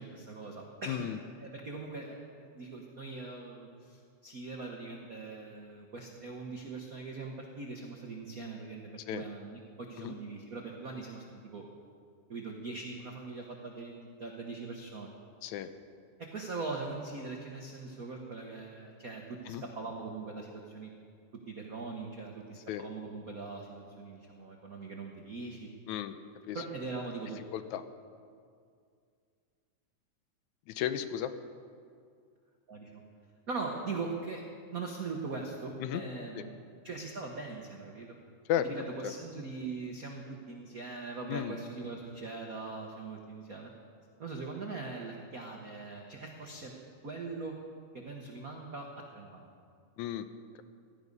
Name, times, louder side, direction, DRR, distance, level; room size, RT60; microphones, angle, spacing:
voice 1, 0.0-1.1 1.4-11.6 12.3-15.1 16.2-20.9 21.5-25.7 26.5-27.4 32.7-33.0 33.5-34.4 34.7-36.6 36.8-38.2 38.6-43.7 44.2-46.7 47.0-47.5 47.9-49.5, right 3 dB, 85° right, 1 dB, 0.7 m, -41 dB
voice 2, 0.9-1.2 9.1-9.2 10.0-10.1 15.4-15.7 19.5-19.6 22.7-22.8 25.9-26.1 26.5-26.6 27.5-27.8 30.7-31.3 35.8-36.0 36.4-36.5 38.5-38.7 41.3-41.6 50.0-50.3, left 11 dB, 80° left, 11 dB, 2.0 m, -33 dB
16.0 x 12.5 x 5.4 m, 2.2 s
omnidirectional pair, 3.4 m